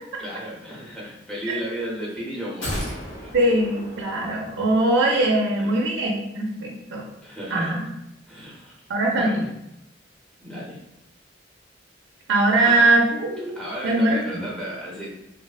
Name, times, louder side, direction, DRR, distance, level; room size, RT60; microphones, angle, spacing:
voice 1, 0.2-3.3 5.4-6.1 7.2-7.8 8.3-8.8 9.1-9.4 10.4-10.8 12.5-13.0 13.6-15.1, equal, 5° left, -6 dB, 0.7 m, -34 dB
sound 1, 2.6-5.0 5.3-5.4, equal, 70° left, 0.6 m, -34 dB
voice 2, 3.3-7.0 7.5-7.8 8.9-9.4 12.3-13.6 13.8-14.2, right 2 dB, 85° right, -1 dB, 0.5 m, -21 dB
2.7 x 2.0 x 2.3 m, 0.86 s
head